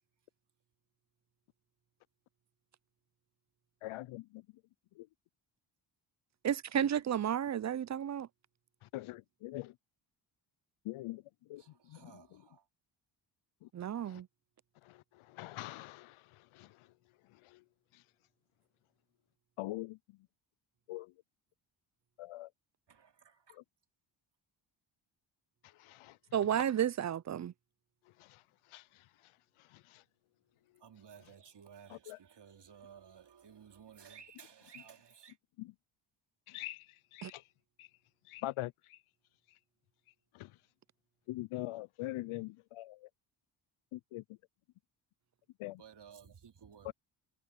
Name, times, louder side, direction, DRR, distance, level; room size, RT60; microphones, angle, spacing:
voice 1, 3.8-4.4 5.0-5.1 6.8-6.9 8.8-9.7 10.8-11.2 11.5-11.6 11.9-12.1 13.6-13.7 14.1-14.2 14.8-16.8 17.4-17.6 19.6-20.0 20.9-21.1 22.2-22.5 25.8-26.2 28.2-28.4 28.7-29.0 29.7-30.0 32.1-32.2 35.6-35.7 36.5-37.4 37.8-37.9 38.3-39.0 40.3-40.5 41.3-43.1 43.9-44.2 45.6-45.8 46.8-46.9, left 17 dB, 75° left, 0.6 m, -43 dB
voice 2, 6.4-8.3 13.7-14.3 26.3-27.5 37.2-37.3, right 9 dB, 35° right, 0.5 m, -32 dB
voice 3, 11.6-12.7 22.9-23.6 30.8-35.4 45.8-46.9, right 7 dB, 55° right, 3.1 m, -56 dB
supercardioid pair, 60°, 50 cm